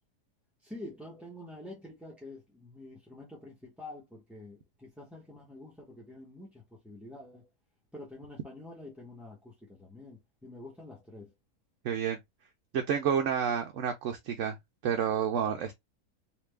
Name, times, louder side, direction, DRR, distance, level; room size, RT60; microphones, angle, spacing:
voice 1, 0.6-7.5 7.9-11.3, left 2 dB, ahead, 0.7 m, -47 dB
voice 2, 11.8-12.2 12.7-14.6 14.8-15.8, right 8 dB, 65° right, 0.9 m, -29 dB
3.5 x 2.9 x 3.2 m
omnidirectional pair, 1.6 m